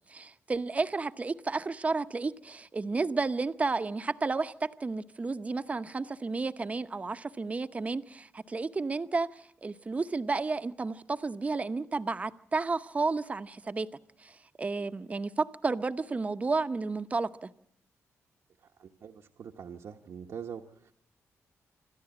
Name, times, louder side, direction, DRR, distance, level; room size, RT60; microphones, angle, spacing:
voice 1, 0.1-13.9 14.2-17.5, right 3 dB, 25° right, 0.8 m, -32 dB
voice 2, 18.6-20.9, right 7 dB, 65° right, 1.0 m, -44 dB
26.5 x 13.0 x 8.7 m
cardioid pair, 120°, 5 cm